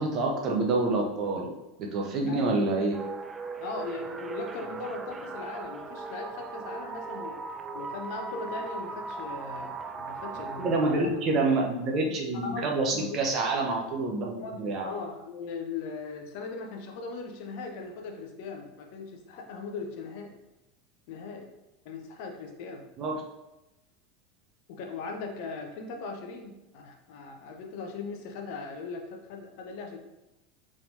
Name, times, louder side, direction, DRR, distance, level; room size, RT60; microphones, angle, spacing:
voice 1, 0.0-1.5 1.8-2.9 10.6-14.9 23.0-23.2, right 2 dB, 40° right, 0 dB, 0.7 m, -27 dB
voice 2, 2.3-2.6 3.6-7.4 7.7-11.1 12.0-12.1 12.4-12.7 13.0-13.1 14.4-20.4 21.1-21.5 21.8-22.9 24.7-30.0, left 4 dB, 55° left, 4 dB, 0.6 m, -39 dB
sound 1, 2.9-11.0, right 4 dB, 20° right, 0.3 m, -38 dB
4.2 x 3.5 x 2.6 m, 0.95 s
figure-of-eight pair, 80°, 0 cm